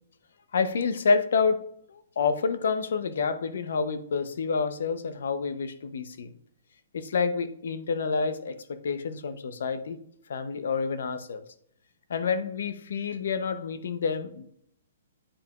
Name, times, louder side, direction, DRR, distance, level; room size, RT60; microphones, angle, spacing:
voice 1, 0.5-6.3 6.9-10.0 10.3-11.4 12.1-14.4, left 5 dB, 75° left, 11 dB, 0.7 m, -28 dB
9.9 x 4.5 x 2.4 m, 0.69 s
hypercardioid pair, 145°, 0 cm